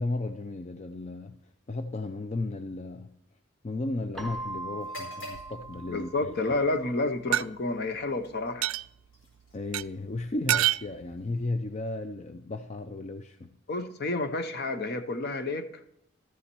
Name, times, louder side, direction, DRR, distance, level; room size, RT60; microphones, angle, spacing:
voice 1, 0.0-1.4 1.7-3.2 3.6-6.4 9.5-13.6, left 2 dB, 35° left, 0.4 m, -34 dB
Keyboard (musical), 4.1-6.9, right 2 dB, 5° left, 1.0 m, -40 dB
sound 1, 4.7-12.6, left 1 dB, 75° left, 4.5 m, -52 dB
sound 2, 5.3-6.0 7.3-7.4 8.6-8.9 9.7-9.8 10.5-10.9, right 13 dB, 90° right, 0.3 m, -26 dB
voice 2, 5.9-8.7 13.7-15.8, left 2 dB, 50° left, 0.8 m, -30 dB
13.5 x 7.1 x 4.5 m
head